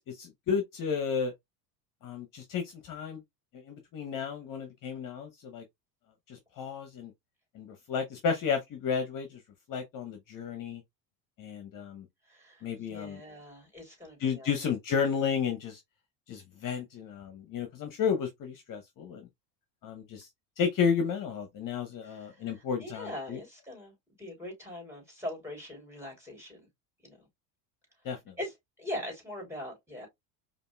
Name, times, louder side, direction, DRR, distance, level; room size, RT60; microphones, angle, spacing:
voice 1, 0.1-1.3 2.0-3.2 3.6-5.6 6.3-7.1 7.5-9.4 9.7-10.8 11.4-12.0 12.6-13.2 14.2-15.8 16.3-19.3 19.8-20.3 20.6-23.4 28.0-28.3, left 6 dB, 40° left, 0.9 m, -32 dB
voice 2, 12.3-14.5 22.0-26.7 27.0-27.2 28.4-30.1, left 1 dB, 5° right, 3.0 m, -42 dB
5.1 x 2.6 x 2.2 m
supercardioid pair, 95°, 48 cm